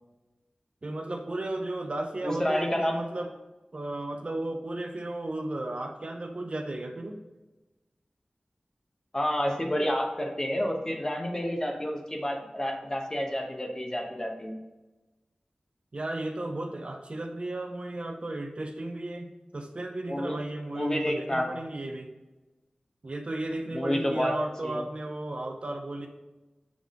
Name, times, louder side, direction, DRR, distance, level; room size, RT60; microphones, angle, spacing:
voice 1, 0.8-3.3 3.7-7.2 15.9-22.1 23.0-26.1, right 2 dB, 50° right, 3 dB, 0.7 m, -34 dB
voice 2, 2.2-3.0 9.1-14.6 20.1-20.3 20.7-21.5 23.7-24.3 24.6-24.8, equal, 25° left, 1 dB, 1.1 m, -29 dB
7.5 x 3.6 x 3.7 m, 1.1 s
wide cardioid pair, 75°, 2 cm